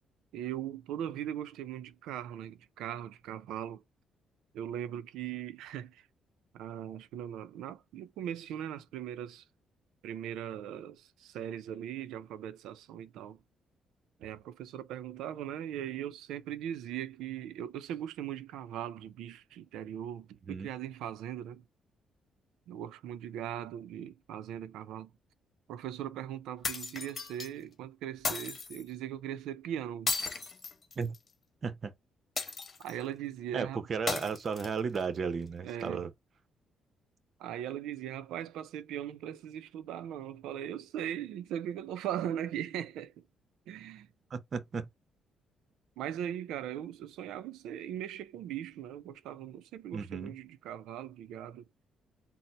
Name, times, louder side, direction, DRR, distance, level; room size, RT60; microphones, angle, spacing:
voice 1, 0.3-3.8 4.5-6.1 6.5-9.4 10.0-13.4 14.2-21.6 22.7-25.1 25.7-30.1 32.8-33.8 35.6-36.0 37.4-43.1 43.7-44.1 46.0-51.7, right 10 dB, 90° right, 0.4 m, -39 dB
sound 1, 26.6-27.5 28.2-28.8 30.1-31.3 32.4-33.0 34.1-35.0, left 4 dB, 40° left, 1.2 m, -35 dB
voice 2, 31.6-31.9 33.5-36.1 44.3-44.9 49.9-50.3, right 5 dB, 45° right, 0.7 m, -34 dB
4.0 x 2.0 x 4.3 m
cardioid pair, 90°, 0 cm